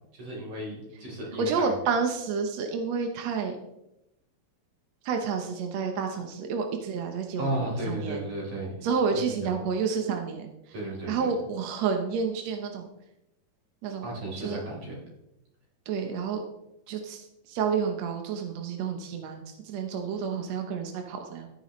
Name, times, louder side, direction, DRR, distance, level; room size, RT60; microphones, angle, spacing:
voice 1, 0.1-1.7 7.4-8.7 9.4-9.5 10.7-11.3 14.0-14.9, right 1 dB, 45° right, -4 dB, 4.9 m, -34 dB
voice 2, 1.4-3.6 5.0-8.3 8.8-10.8 11.1-12.8 13.8-14.1 14.4-14.6 15.9-16.4 16.9-21.5, right 5 dB, 70° right, 4 dB, 1.7 m, -30 dB
13.5 x 10.0 x 3.2 m, 0.87 s
omnidirectional pair, 4.2 m